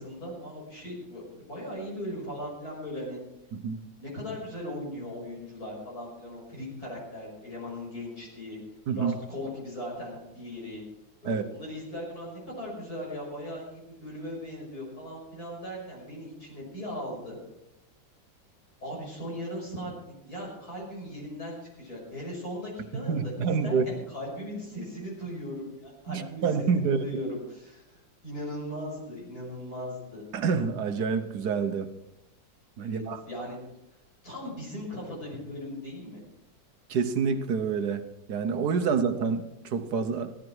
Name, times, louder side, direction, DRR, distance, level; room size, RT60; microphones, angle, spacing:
voice 1, 0.0-3.2 4.0-8.6 8.9-10.8 11.2-17.4 18.8-26.4 26.8-30.2 32.8-33.6 34.2-36.2, equal, 50° left, -3 dB, 6.3 m, -38 dB
voice 2, 3.5-3.8 8.9-9.1 11.2-11.4 22.9-23.8 26.1-27.0 30.3-31.9 32.8-33.2 36.9-40.3, right 5 dB, 60° right, 9 dB, 1.4 m, -27 dB
16.5 x 13.0 x 4.7 m, 0.86 s
omnidirectional pair, 2.0 m